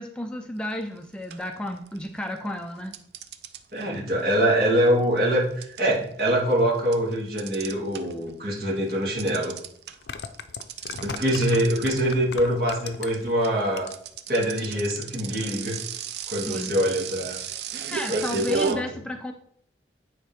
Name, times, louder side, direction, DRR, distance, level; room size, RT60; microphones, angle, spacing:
voice 1, 0.0-3.0 16.4-16.8 17.9-19.3, left 1 dB, 5° left, 3 dB, 0.4 m, -32 dB
sound 1, 0.7-1.0 1.3-2.2 2.9-8.3 8.6-18.7, right 8 dB, 70° right, 0.5 m, -35 dB
voice 2, 3.7-9.5 11.0-13.9 14.3-15.8 16.3-17.4 18.1-18.8, equal, 55° right, -4 dB, 2.2 m, -24 dB
sound 2, 8.9-9.0 9.9-13.3 13.7-14.2 14.5-14.6, left 5 dB, 75° left, 0.5 m, -37 dB
9.3 x 4.4 x 3.5 m, 0.65 s
head